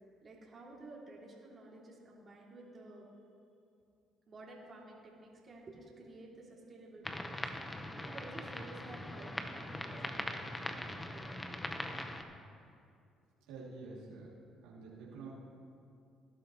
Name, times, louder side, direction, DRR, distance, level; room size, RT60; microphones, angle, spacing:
voice 1, 0.2-3.1 4.3-7.7 8.0-11.6, right 2 dB, 40° right, -4 dB, 3.0 m, -52 dB
sound 1, 7.0-12.2, left 1 dB, 15° left, 1.1 m, -41 dB
voice 2, 13.5-14.3 14.6-15.3, right 4 dB, 85° right, -7 dB, 3.0 m, -48 dB
18.5 x 11.5 x 3.2 m, 2.5 s
supercardioid pair, 65°, 0 cm